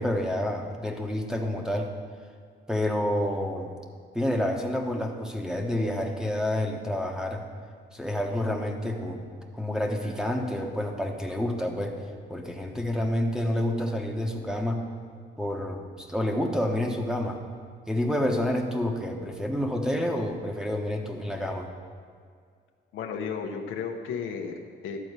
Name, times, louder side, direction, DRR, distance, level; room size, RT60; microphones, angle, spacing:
voice 1, 0.0-1.9 2.7-3.7 4.1-7.5 7.9-12.0 12.3-14.9 15.4-17.4 17.9-21.7, left 1 dB, 5° right, 3 dB, 1.1 m, -29 dB
voice 2, 22.9-25.0, left 6 dB, 90° left, 3 dB, 0.9 m, -34 dB
12.0 x 4.3 x 8.0 m, 2.1 s
cardioid pair, 90°, 20 cm